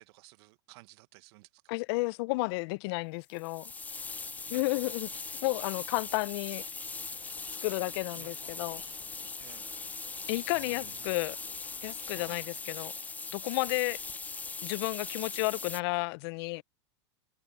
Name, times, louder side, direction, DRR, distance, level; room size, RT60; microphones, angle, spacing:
voice 1, 0.0-1.6 4.5-5.0 8.1-8.6 9.4-9.9 10.5-11.2 12.1-12.4, right 22 dB, 55° right, 1.5 m, -55 dB
voice 2, 1.7-3.7 4.5-5.1 5.4-6.6 7.6-8.8 10.3-11.4 11.8-12.9 13.3-14.0 14.6-16.6, left 25 dB, 55° left, 0.6 m, -32 dB
sound 1, 3.3-15.8, left 4 dB, 10° left, 0.6 m, -40 dB
sound 2, 4.2-13.2, right 14 dB, 75° right, 7.3 m, -61 dB
sound 3, 7.0-12.5, left 13 dB, 35° left, 1.9 m, -59 dB
hypercardioid pair, 125°, 16 cm